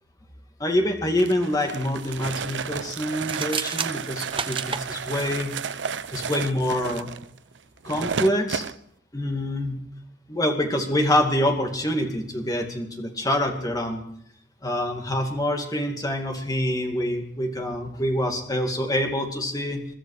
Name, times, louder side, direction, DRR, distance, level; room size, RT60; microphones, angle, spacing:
voice 1, 0.6-5.6 6.1-7.1 7.8-8.6 9.1-9.8 10.3-14.0 14.6-19.8, left 1 dB, 20° left, 2 dB, 2.3 m, -26 dB
sound 1, 1.2-8.8, right 6 dB, 80° right, 0.6 m, -32 dB
sound 2, 3.1-4.9, right 6 dB, 30° right, 0.8 m, -30 dB
22.0 x 13.0 x 4.9 m, 0.69 s
head